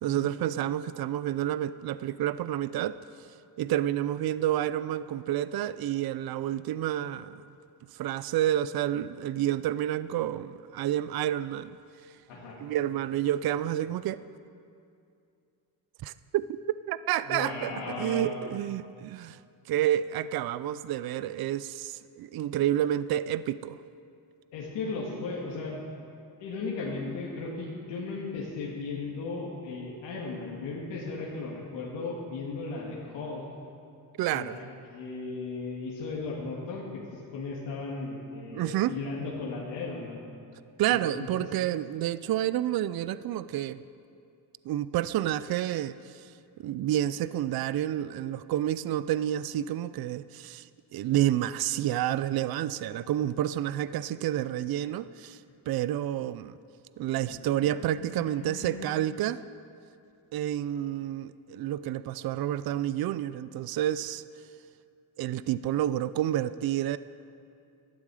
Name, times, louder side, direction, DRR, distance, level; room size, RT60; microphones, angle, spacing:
voice 1, 0.0-3.0 3.6-7.4 7.9-11.8 12.6-14.2 16.0-16.5 16.9-19.4 19.7-23.8 34.2-34.6 38.5-39.0 40.8-43.8 44.7-46.3 46.6-50.7 50.9-55.4 55.7-56.5 57.0-59.4 60.3-64.2 65.2-67.0, right 12 dB, 60° right, 15 dB, 0.5 m, -29 dB
voice 2, 17.3-18.4 24.5-25.8 26.4-33.4 34.3-34.6 34.9-40.2 40.9-41.5 57.0-58.9, left 3 dB, 85° left, -4 dB, 2.3 m, -36 dB
18.5 x 12.5 x 4.9 m, 2.5 s
cardioid pair, 110°, 42 cm